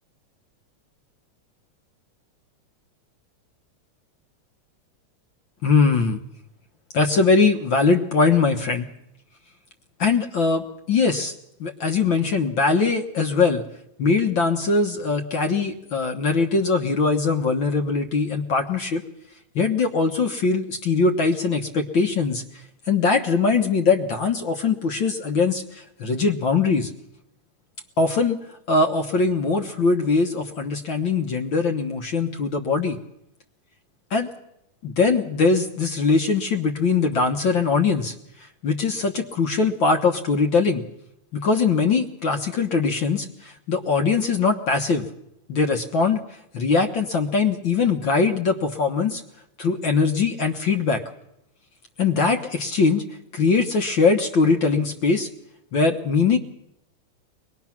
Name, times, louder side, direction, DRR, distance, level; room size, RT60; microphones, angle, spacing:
voice 1, 5.6-6.2 6.9-8.9 10.0-11.3 11.6-13.6 14.0-19.0 19.5-22.4 22.9-26.9 28.0-28.4 28.7-33.0 34.1-34.3 34.8-38.1 38.6-40.8 41.3-45.1 45.5-46.2 46.5-49.2 49.6-51.0 52.0-53.0 53.3-55.3 55.7-56.4, left 4 dB, 50° left, 4 dB, 1.6 m, -21 dB
24.0 x 21.0 x 5.9 m, 0.80 s
omnidirectional pair, 3.3 m